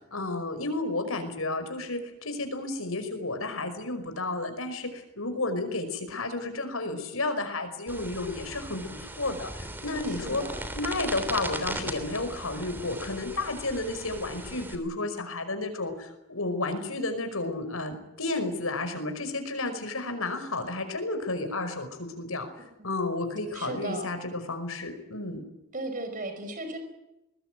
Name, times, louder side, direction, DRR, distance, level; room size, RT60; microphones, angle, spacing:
voice 1, 0.0-10.4 10.8-22.5 22.8-25.4, left 2 dB, 75° left, 8 dB, 5.3 m, -32 dB
sound 1, 7.9-14.8, right 1 dB, 10° right, 3.0 m, -38 dB
voice 2, 10.0-10.6 22.8-22.9 23.5-24.1 25.7-26.8, right 2 dB, 35° right, 7 dB, 5.2 m, -36 dB
21.5 x 21.0 x 9.2 m, 0.94 s
head